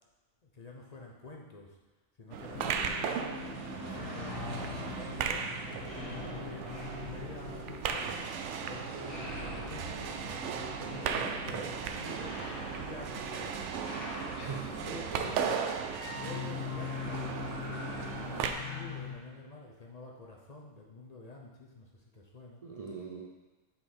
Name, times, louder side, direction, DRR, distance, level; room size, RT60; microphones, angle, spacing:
voice 1, 0.4-1.8 2.2-3.2 3.8-5.5 6.3-12.5 12.7-13.9 14.5-15.6 16.1-22.6, left 2 dB, 40° left, -1 dB, 0.8 m, -48 dB
sound 1, 2.3-18.5, right 6 dB, 75° right, 0.9 m, -37 dB
sound 2, 2.5-19.2, left 3 dB, 75° left, 2.1 m, -42 dB
voice 2, 14.4-15.2 22.6-23.3, right 5 dB, 45° right, -1 dB, 0.5 m, -42 dB
7.8 x 4.1 x 4.4 m, 1.2 s
omnidirectional pair, 1.3 m